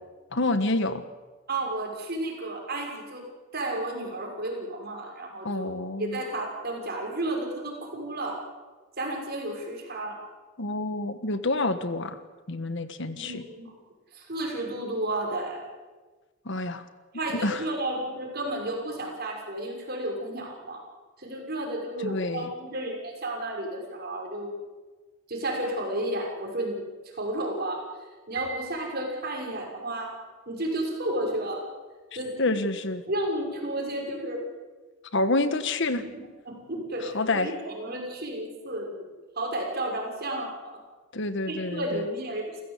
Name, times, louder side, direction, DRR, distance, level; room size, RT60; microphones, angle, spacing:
voice 1, 0.3-1.0 5.4-6.2 10.6-12.2 12.5-13.4 16.4-16.8 17.4-17.6 22.0-22.5 32.4-33.0 35.1-36.0 37.0-37.5 41.1-42.1, left 2 dB, 60° left, 11 dB, 1.4 m, -28 dB
voice 2, 1.5-3.2 3.5-5.7 6.0-8.4 9.0-10.2 13.2-13.7 14.1-15.6 17.1-20.8 21.2-24.5 25.3-26.8 27.2-27.8 28.3-30.1 30.5-31.6 32.2-32.6 33.1-34.4 35.9-39.0 39.3-40.8 41.5-42.6, right 1 dB, 50° right, 1 dB, 6.1 m, -32 dB
Piano, 28.4-29.7, right 5 dB, 80° right, 3.9 m, -40 dB
28.5 x 16.0 x 8.4 m, 1.3 s
head